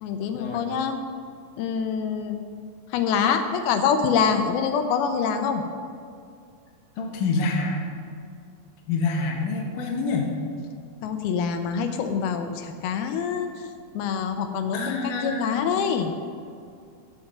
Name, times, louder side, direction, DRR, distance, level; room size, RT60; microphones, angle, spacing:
voice 1, 0.0-1.0 1.6-2.4 2.9-5.6 11.0-13.5 13.9-16.1, left 6 dB, 80° left, 7 dB, 2.7 m, -25 dB
voice 2, 7.0-7.8 8.9-10.3 14.7-15.7, left 3 dB, 65° left, 0 dB, 2.6 m, -27 dB
16.5 x 6.0 x 6.5 m, 2.3 s
omnidirectional pair, 4.4 m